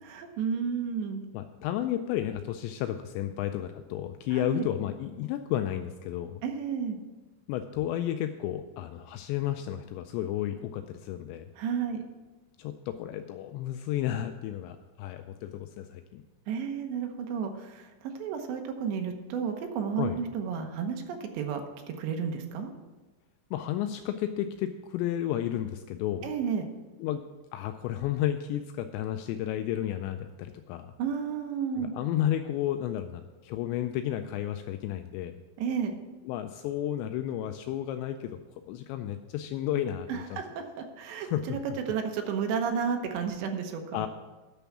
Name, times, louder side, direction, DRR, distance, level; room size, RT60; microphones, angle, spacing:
voice 1, 0.0-1.2 4.3-4.7 6.4-7.0 11.6-12.0 16.5-21.6 22.0-22.7 26.2-26.7 31.0-31.9 35.6-36.0 40.1-41.6 41.9-44.0, right 6 dB, 75° right, 4 dB, 3.0 m, -32 dB
voice 2, 1.3-6.4 7.5-11.5 12.6-16.2 20.0-20.2 23.5-26.3 27.0-27.2 27.5-30.9 31.8-35.4 36.3-38.3 38.7-40.4 41.2-41.6 43.9-44.1, left 12 dB, 90° left, 8 dB, 2.5 m, -32 dB
9.3 x 6.9 x 7.2 m, 1.2 s
omnidirectional pair, 5.6 m